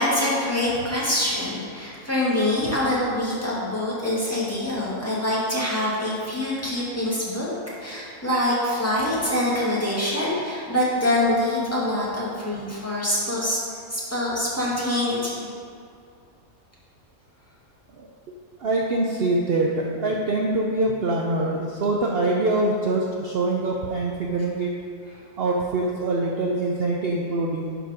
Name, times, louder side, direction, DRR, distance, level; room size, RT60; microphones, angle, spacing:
voice 1, 0.0-7.5 7.8-13.6 13.9-15.4, left 1 dB, 10° left, -7 dB, 2.0 m, -25 dB
voice 2, 18.6-24.7 25.4-27.8, right 2 dB, 55° right, -1 dB, 0.8 m, -24 dB
11.0 x 4.9 x 5.1 m, 2.4 s
omnidirectional pair, 1.4 m